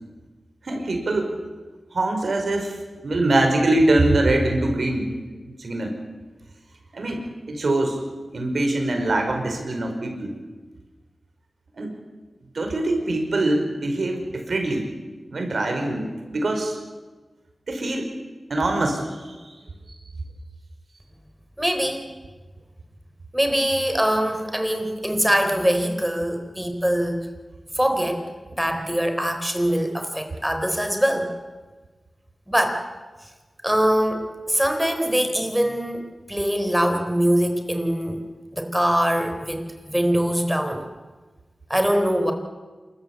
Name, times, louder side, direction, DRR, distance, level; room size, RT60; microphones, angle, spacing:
voice 1, 0.6-1.4 1.9-2.8 3.0-5.1 5.5-5.9 6.9-7.2 7.5-8.0 8.3-10.4 11.7-11.9 12.5-14.9 15.3-16.8 17.7-18.1 18.5-19.4, right 2 dB, 70° right, 3 dB, 5.1 m, -23 dB
voice 2, 21.6-22.1 23.3-27.3 27.7-28.2 28.5-31.3 32.5-32.8 33.6-38.2 38.5-40.8 41.7-42.3, equal, 5° right, 5 dB, 4.0 m, -23 dB
27.0 x 14.5 x 8.5 m, 1.3 s
cardioid pair, 50°, 0 cm